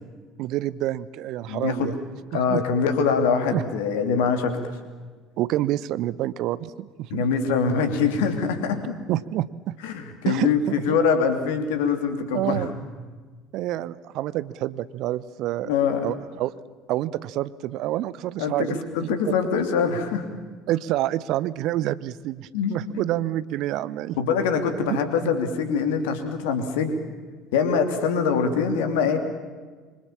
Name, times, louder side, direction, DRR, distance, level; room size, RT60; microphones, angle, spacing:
voice 1, 0.4-2.0 2.3-2.6 3.5-3.6 5.4-7.3 9.1-9.8 10.3-11.0 12.3-12.7 13.5-15.7 16.0-16.5 16.9-18.8 19.2-19.4 20.7-24.2 24.8-25.0, right 14 dB, 55° right, 18 dB, 0.8 m, -28 dB
voice 2, 1.5-1.9 2.3-4.7 7.1-9.0 9.8-12.6 15.7-16.0 18.4-18.7 18.9-20.3 22.5-22.8 24.2-27.0 27.5-29.2, left 6 dB, 65° left, 7 dB, 3.0 m, -23 dB
26.0 x 25.0 x 7.4 m, 1.4 s
figure-of-eight pair, 60°, 0 cm